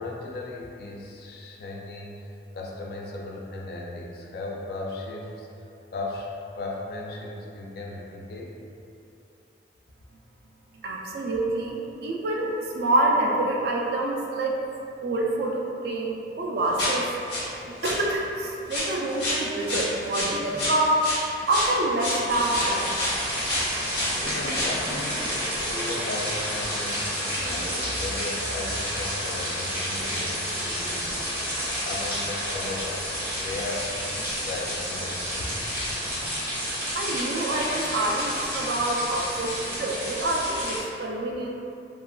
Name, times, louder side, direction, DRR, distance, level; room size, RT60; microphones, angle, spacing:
voice 1, 0.0-5.5 5.9-8.6 24.2-25.3 25.7-31.3 31.8-33.9 34.4-35.5, left 2 dB, 60° left, -2 dB, 0.3 m, -36 dB
voice 2, 10.8-14.6 15.0-17.1 17.6-21.0 21.5-22.8 36.9-41.5, right 1 dB, 60° right, -1 dB, 0.3 m, -26 dB
sound 1, 16.8-17.5 17.8-18.0 18.7-23.2 23.5-24.2 24.5-24.8 25.2-25.4 25.7-25.8 26.6-26.7, left 1 dB, 85° left, 0.7 m, -29 dB
sound 2, 20.1-20.8 22.2-22.9 24.1-25.9 27.4-28.1 29.9-30.4 30.7-31.1 32.5-32.9, right 1 dB, 90° right, 0.8 m, -41 dB
sound 3, 22.3-40.8, equal, 15° right, 0.5 m, -30 dB
2.8 x 2.3 x 2.3 m, 2.7 s
head